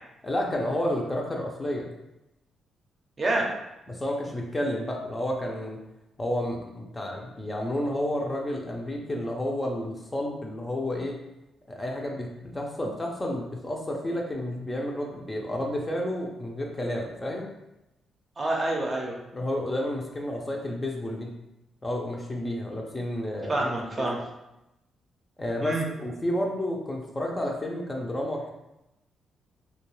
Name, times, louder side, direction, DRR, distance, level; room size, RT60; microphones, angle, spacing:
voice 1, 0.2-1.9 3.9-5.8 6.2-11.2 11.7-17.5 19.3-21.3 21.8-24.1 25.4-28.5, left 1 dB, 20° left, 0 dB, 0.5 m, -31 dB
voice 2, 3.2-3.5 18.4-19.2 23.5-24.2 25.6-25.8, right 2 dB, 35° right, -1 dB, 0.6 m, -27 dB
2.3 x 2.2 x 3.1 m, 0.91 s
cardioid pair, 75°, 0 cm